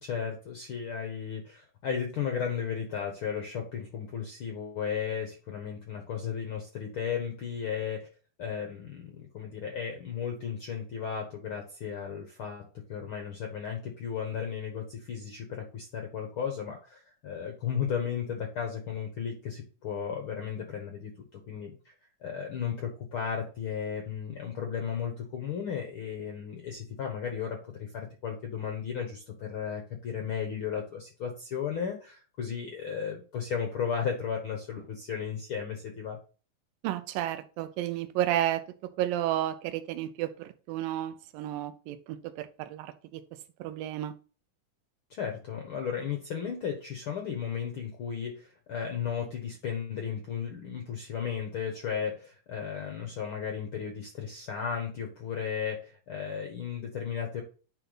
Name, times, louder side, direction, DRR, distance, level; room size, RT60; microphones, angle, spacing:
voice 1, 0.0-8.1 8.4-21.1 21.5-21.9 22.2-36.2 45.1-57.4, left 7 dB, 70° left, 3 dB, 1.3 m, -35 dB
voice 2, 36.8-38.6 39.0-43.2 43.6-44.1, right 13 dB, 85° right, 12 dB, 2.4 m, -32 dB
9.9 x 4.0 x 3.9 m, 0.37 s
omnidirectional pair, 3.9 m